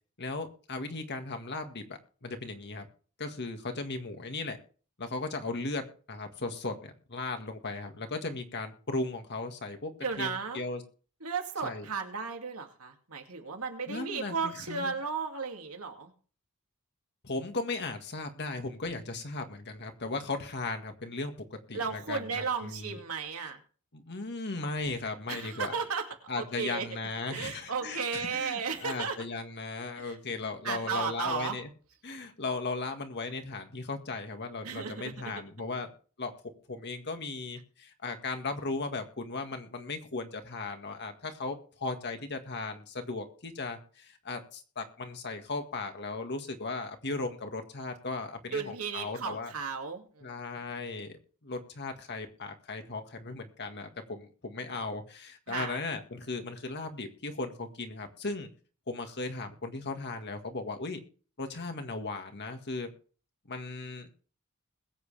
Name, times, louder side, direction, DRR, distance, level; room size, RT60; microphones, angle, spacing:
voice 1, 0.2-2.9 3.2-4.6 5.0-10.8 11.6-11.9 13.9-14.9 17.2-21.3 21.7-23.0 23.4-23.5 23.9-25.7 26.3-31.7 32.0-35.9 36.2-36.3 36.7-49.5 50.2-58.5 58.9-61.0 61.4-62.9 63.5-64.2, left 3 dB, 50° left, 6 dB, 1.9 m, -37 dB
voice 2, 10.0-10.6 11.2-16.1 21.7-23.6 25.3-26.1 26.4-26.9 27.3-29.2 30.0-30.1 30.6-31.6 34.6-35.1 48.5-50.3 55.5-55.8, right 5 dB, 80° right, 3 dB, 2.4 m, -34 dB
21.0 x 8.1 x 3.4 m, 0.40 s
head